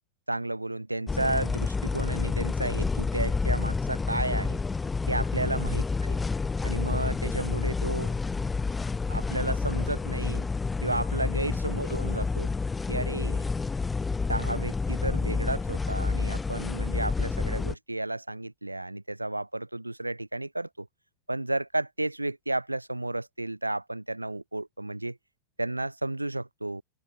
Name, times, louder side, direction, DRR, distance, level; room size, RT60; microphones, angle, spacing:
voice 1, 0.3-4.6 5.1-6.2 6.6-8.1 9.1-10.5 10.8-12.5 12.9-13.4 14.3-20.9 21.3-25.2 25.6-26.8, right 2 dB, 85° right, 2.6 m, -32 dB
sound 1, 1.1-17.7, left 4 dB, 15° left, 2.0 m, -29 dB
open air
figure-of-eight pair, 90°, 0 cm